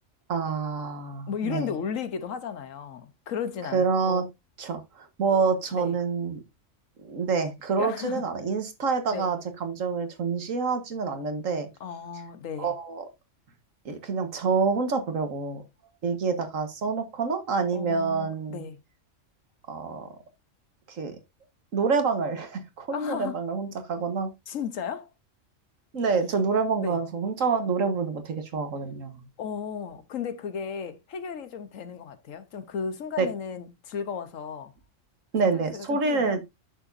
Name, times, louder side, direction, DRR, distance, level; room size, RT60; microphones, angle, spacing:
voice 1, 0.3-1.7 3.7-4.3 4.6-6.4 7.0-11.7 12.6-13.1 13.9-15.6 16.0-18.6 19.7-20.1 20.9-21.2 21.7-24.3 25.9-29.3 33.2-33.3 35.3-36.4, right 5 dB, 90° right, 1.8 m, -27 dB
voice 2, 1.3-4.2 5.7-5.9 7.8-8.3 9.1-9.3 11.8-12.7 17.7-18.8 22.9-23.4 24.5-25.1 26.8-27.0 29.4-34.7 35.5-36.4, left 7 dB, 90° left, 1.4 m, -35 dB
9.7 x 6.8 x 2.6 m
omnidirectional pair, 1.3 m